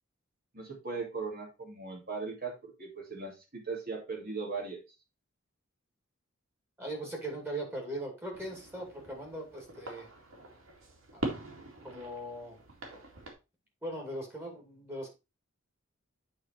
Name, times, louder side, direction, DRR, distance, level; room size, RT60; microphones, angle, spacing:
voice 1, 0.5-4.8, right 4 dB, 45° right, 0 dB, 2.4 m, -38 dB
voice 2, 6.8-10.1 11.1-11.3 11.8-12.6 13.8-15.1, right 1 dB, 10° right, 1 dB, 2.4 m, -39 dB
sound 1, 8.3-13.3, right 1 dB, 85° right, 2.3 m, -43 dB
8.7 x 3.9 x 4.4 m, 0.27 s
head